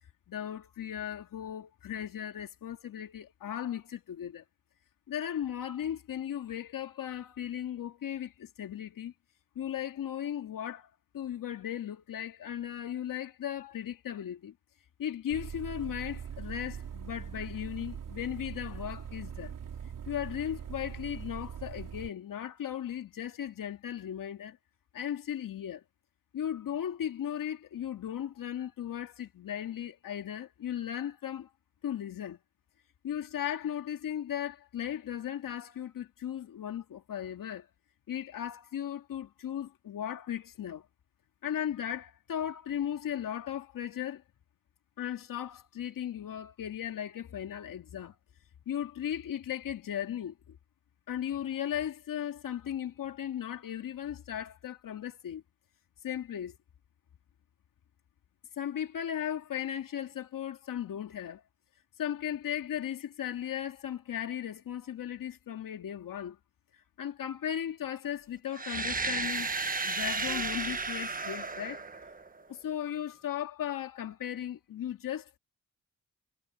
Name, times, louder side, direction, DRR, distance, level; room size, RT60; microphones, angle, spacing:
voice 1, 0.3-4.4 5.1-9.1 9.6-10.9 11.1-14.5 15.0-19.5 20.1-24.6 24.9-25.8 26.3-31.5 31.8-32.4 33.0-37.7 38.1-40.9 41.4-44.2 45.0-48.2 48.7-50.6 51.1-55.4 56.0-56.6 58.6-61.4 62.0-66.4 67.0-69.5 69.8-71.8 72.5-75.4, left 10 dB, 80° left, 2.3 m, -36 dB
sound 1, 15.3-22.1, right 8 dB, 70° right, 4.2 m, -42 dB
sound 2, 68.5-72.5, right 4 dB, 25° right, 1.4 m, -33 dB
cardioid pair, 80°, 33 cm